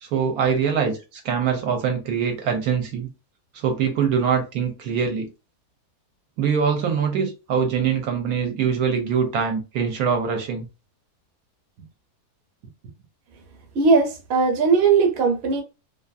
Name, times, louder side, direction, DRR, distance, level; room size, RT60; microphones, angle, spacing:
voice 1, 0.0-3.1 3.5-5.3 6.4-10.6, right 6 dB, 75° right, 1.0 m, -23 dB
voice 2, 13.7-15.6, right 4 dB, 50° right, 0.8 m, -18 dB
2.6 x 2.5 x 2.3 m
omnidirectional pair, 1.7 m